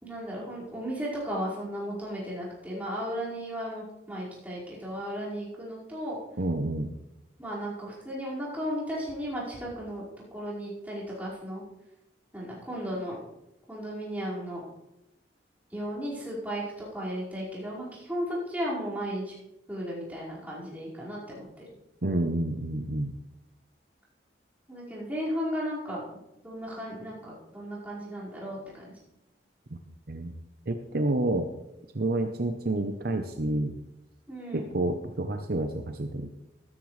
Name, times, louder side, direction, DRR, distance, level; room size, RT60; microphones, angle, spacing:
voice 1, 0.0-6.2 7.4-10.0 10.3-11.6 12.3-13.2 13.7-14.6 15.7-19.3 19.7-21.6 24.7-26.0 26.4-28.9 34.3-34.6, equal, 10° right, -8 dB, 5.1 m, -35 dB
voice 2, 6.4-6.9 22.0-23.1 29.7-29.8 30.1-30.3 30.7-31.5 31.9-33.7 34.5-36.3, right 2 dB, 60° right, 6 dB, 0.8 m, -29 dB
13.5 x 13.5 x 3.3 m, 0.88 s
head